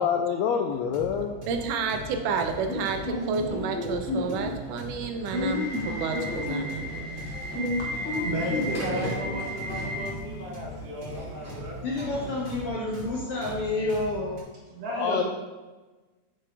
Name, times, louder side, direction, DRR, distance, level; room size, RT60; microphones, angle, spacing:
voice 1, 0.0-1.4 14.9-15.2, left 7 dB, 90° left, 4 dB, 1.5 m, -26 dB
sound 1, 0.7-14.4, right 1 dB, 15° right, 2.5 m, -41 dB
voice 2, 1.5-7.2, right 5 dB, 85° right, 5 dB, 2.3 m, -31 dB
Subway metro underground / Alarm, 2.6-12.4, left 1 dB, 5° left, 1.2 m, -32 dB
voice 3, 7.8-12.4 12.7-12.9 14.7-15.2, right 1 dB, 50° right, -3 dB, 2.6 m, -35 dB
voice 4, 11.8-14.4, left 2 dB, 65° left, -2 dB, 1.5 m, -29 dB
7.9 x 6.8 x 3.5 m, 1.2 s
omnidirectional pair, 3.6 m